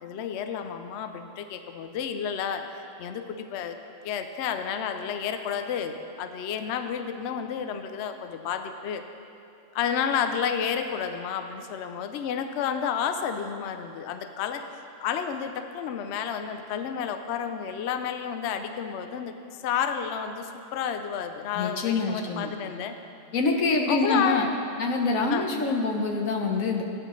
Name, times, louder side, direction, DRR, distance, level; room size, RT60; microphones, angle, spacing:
voice 1, 0.0-2.6 3.0-3.8 4.0-9.0 9.7-14.6 15.0-19.3 19.6-22.9 23.9-24.5 25.3-25.5, left 7 dB, 65° left, 7 dB, 0.8 m, -31 dB
voice 2, 21.5-22.5 23.3-24.5 24.8-26.8, left 3 dB, 90° left, 2 dB, 1.4 m, -25 dB
16.0 x 9.0 x 3.1 m, 2.8 s
omnidirectional pair, 1.3 m